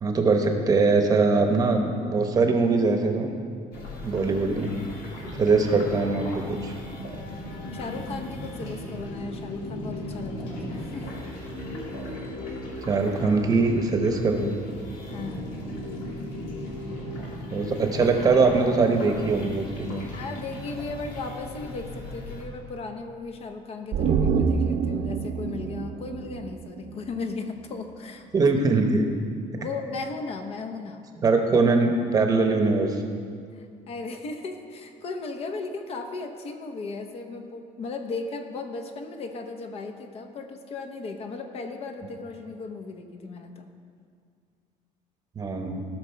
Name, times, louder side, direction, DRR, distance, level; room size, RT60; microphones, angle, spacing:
voice 1, 0.0-3.3 4.0-4.7 5.3-6.7 12.9-14.5 17.5-20.1 28.3-29.1 31.2-33.0 45.4-45.8, right 3 dB, 25° right, 4 dB, 0.9 m, -22 dB
sound 1, 3.7-22.4, left 1 dB, 85° left, 2.5 m, -37 dB
voice 2, 7.7-11.1 15.1-15.6 20.1-28.5 29.6-31.0 33.5-43.7, left 3 dB, 45° left, 5 dB, 0.9 m, -36 dB
sound 2, 23.9-27.3 27.6-27.7, right 6 dB, 50° right, 0.5 m, -27 dB
16.5 x 6.2 x 4.5 m, 2.2 s
cardioid pair, 160°, 14 cm